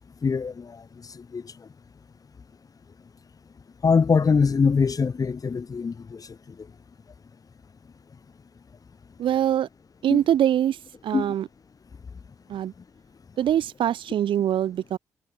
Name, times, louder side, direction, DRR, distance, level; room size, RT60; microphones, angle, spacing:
voice 1, 0.2-1.7 3.8-6.7 10.1-10.2 11.1-11.3, left 5 dB, 40° left, 1.3 m, -24 dB
voice 2, 9.2-9.7 10.0-10.8 11.0-11.5 12.5-12.7 13.4-15.0, right 10 dB, 60° right, 0.7 m, -23 dB
hypercardioid pair, 45°, 10 cm